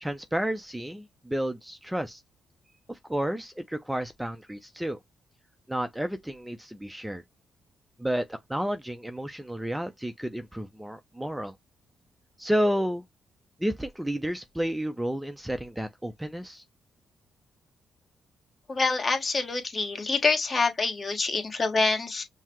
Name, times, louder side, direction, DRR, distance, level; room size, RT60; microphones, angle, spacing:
voice 1, 0.0-2.2 2.9-5.0 5.7-7.2 8.0-11.5 12.4-13.0 13.6-16.6, equal, 5° right, 0.5 m, -31 dB
voice 2, 18.7-22.2, left 4 dB, 40° left, 1.3 m, -26 dB
5.5 x 2.1 x 3.0 m
supercardioid pair, 65°, 0 cm